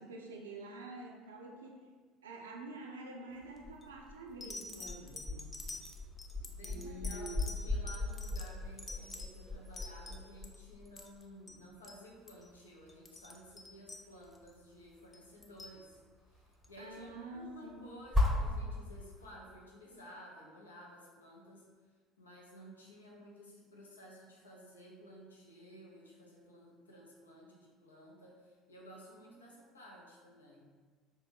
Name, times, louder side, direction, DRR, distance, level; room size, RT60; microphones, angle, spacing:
voice 1, 0.0-1.8 2.2-5.6 6.6-7.5 16.8-18.0, right 2 dB, 75° right, 1 dB, 0.4 m, -47 dB
sound 1, 3.3-19.2, left 2 dB, ahead, 0.8 m, -39 dB
sound 2, 3.6-3.8 4.4-10.6 10.9-11.2 11.5-11.6 11.8-12.0 12.3-12.5 12.9-14.5 15.1-15.8 16.6-16.7, left 2 dB, 20° left, 0.4 m, -48 dB
voice 2, 6.5-16.0 16.3-21.7 22.2-30.7, equal, 80° left, -2 dB, 0.5 m, -54 dB
3.3 x 2.2 x 3.3 m, 1.5 s
figure-of-eight pair, 65°, 0 cm